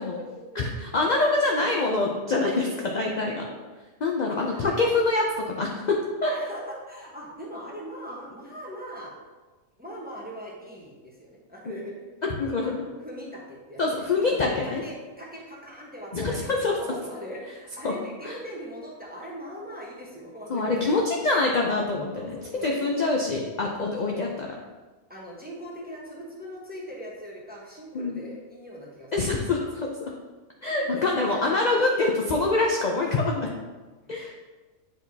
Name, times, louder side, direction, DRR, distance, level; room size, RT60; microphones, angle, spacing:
voice 1, 0.0-0.6 0.9-1.6 3.4-3.6 4.3-4.9 6.2-9.1 9.8-12.0 12.6-21.0 22.1-23.2 24.0-24.4 25.1-29.4 30.8-31.7 34.0-34.3, equal, 10° right, -4 dB, 0.9 m, -41 dB
voice 2, 0.6-3.4 4.0-6.3 12.2-12.7 13.8-14.8 16.1-16.7 17.8-17.9 18.2-18.3 20.5-22.2 22.6-24.3 27.9-28.3 29.1-30.1 30.6-33.5 34.1-34.3, left 3 dB, 50° left, -1 dB, 0.5 m, -25 dB
8.0 x 4.5 x 2.7 m, 1.3 s
omnidirectional pair, 1.4 m